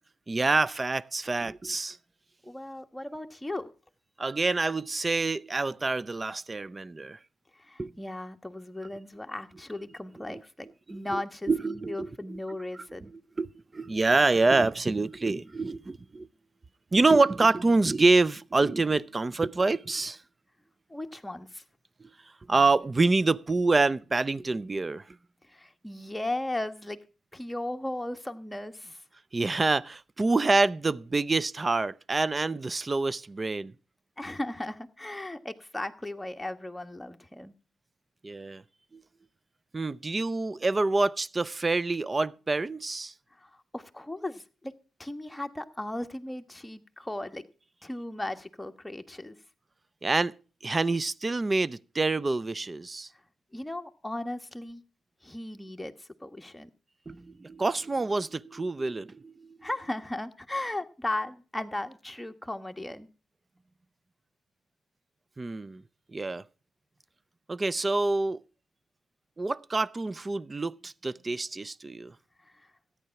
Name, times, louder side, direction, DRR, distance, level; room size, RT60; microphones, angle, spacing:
voice 1, 0.3-2.0 4.2-7.2 7.8-7.9 10.3-10.4 10.9-11.2 11.5-12.1 13.4-13.5 13.7-16.3 16.9-20.2 22.0-22.1 22.5-25.0 29.3-33.7 38.2-38.6 38.9-39.0 39.7-43.1 50.0-50.3 50.6-53.1 57.1-59.6 65.4-65.8 66.1-66.4 67.5-68.4 69.4-72.1, right 3 dB, 30° right, 0.6 m, -26 dB
voice 2, 2.4-3.7 7.5-13.1 20.9-21.6 25.4-27.0 27.3-29.0 34.2-37.5 43.3-44.7 45.0-47.4 47.8-49.4 53.5-54.8 55.2-56.7 59.6-63.1 72.4-72.7, left 1 dB, 10° left, 1.4 m, -36 dB
14.0 x 9.7 x 5.8 m
supercardioid pair, 55°, 0 cm